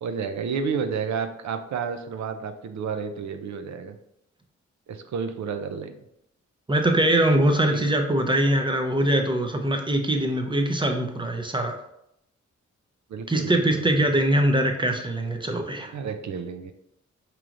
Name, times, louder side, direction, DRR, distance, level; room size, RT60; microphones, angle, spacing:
voice 1, 0.0-4.0 4.9-6.0 7.7-7.8 13.1-14.1 15.9-16.7, right 6 dB, 75° right, 8 dB, 0.5 m, -31 dB
voice 2, 6.7-11.8 13.3-15.9, right 1 dB, 15° right, 4 dB, 0.6 m, -22 dB
4.8 x 3.0 x 2.5 m, 0.80 s
cardioid pair, 55°, 29 cm